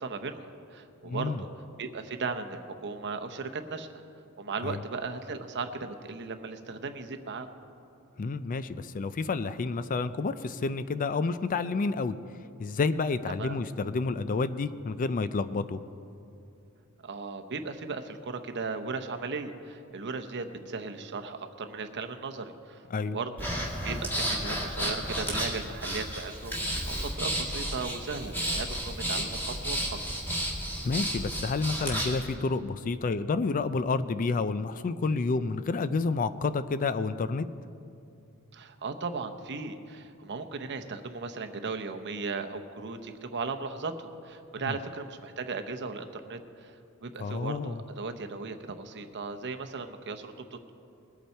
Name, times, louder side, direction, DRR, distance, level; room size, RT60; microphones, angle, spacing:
voice 1, 0.0-1.5 1.8-3.9 4.4-7.5 13.4-13.6 17.0-23.5 23.8-30.2 38.5-50.7, right 4 dB, 50° right, 7 dB, 0.8 m, -37 dB
voice 2, 1.0-1.4 4.6-4.8 8.2-12.1 12.6-15.8 22.9-23.2 30.8-37.5 47.2-47.8, left 4 dB, 35° left, 13 dB, 0.4 m, -29 dB
Breathing, 23.4-32.2, equal, 10° left, 1.8 m, -32 dB
20.5 x 8.4 x 4.4 m, 2.6 s
head